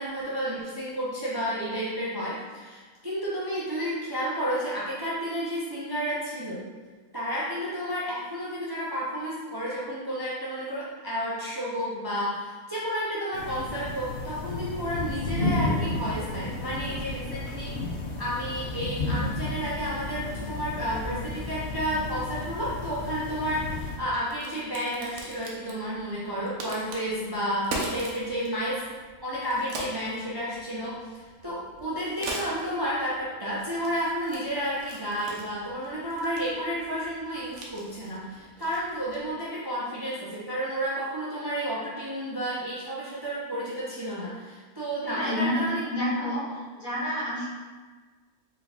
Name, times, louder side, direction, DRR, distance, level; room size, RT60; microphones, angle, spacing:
voice 1, 0.0-6.6 7.1-17.7 18.2-28.8 29.2-30.9 31.4-45.8, equal, 30° right, -7 dB, 0.4 m, -31 dB
sound 1, 13.3-24.0, left 2 dB, 55° left, 0.8 m, -32 dB
Crack, 23.9-39.4, right 2 dB, 80° right, 1.2 m, -42 dB
voice 2, 45.0-46.5 46.7-47.5, equal, 80° left, -8 dB, 1.8 m, -29 dB
3.8 x 3.2 x 3.5 m, 1.4 s
omnidirectional pair, 1.4 m